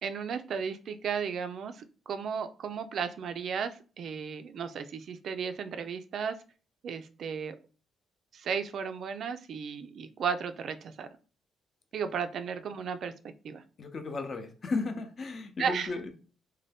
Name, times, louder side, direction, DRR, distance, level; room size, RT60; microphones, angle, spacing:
voice 1, 0.0-3.7 4.0-6.4 6.8-7.6 8.3-11.1 11.9-13.1 13.4-13.6 15.6-15.9, right 6 dB, 60° right, 10 dB, 0.3 m, -34 dB
voice 2, 13.8-16.1, left 3 dB, 40° left, 7 dB, 0.6 m, -34 dB
2.6 x 2.2 x 3.4 m, 0.37 s
cardioid pair, 90°, 0 cm